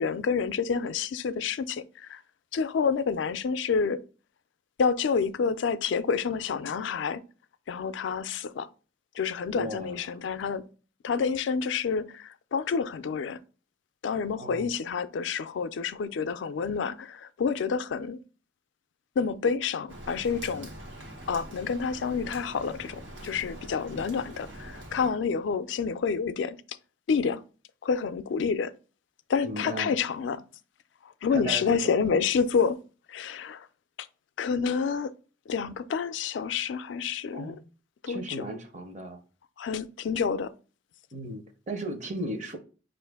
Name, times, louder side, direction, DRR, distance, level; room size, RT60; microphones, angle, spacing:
voice 1, 0.0-2.2 2.5-4.0 4.8-7.2 7.7-8.7 9.1-10.6 11.0-13.4 14.0-18.2 19.2-20.7 21.3-26.6 27.1-27.4 27.8-28.7 29.3-30.4 31.2-32.8 33.1-33.7 34.4-35.1 35.5-37.6 38.0-38.4 39.6-40.5, left 5 dB, 75° left, 0.3 m, -28 dB
voice 2, 9.5-10.2 14.4-14.7 29.4-30.0 31.3-31.9 37.3-37.6 38.1-39.2 41.1-42.6, right 1 dB, 40° right, 0.7 m, -36 dB
Rain, 19.9-25.1, right 1 dB, 80° right, 0.9 m, -44 dB
5.5 x 2.5 x 3.4 m
head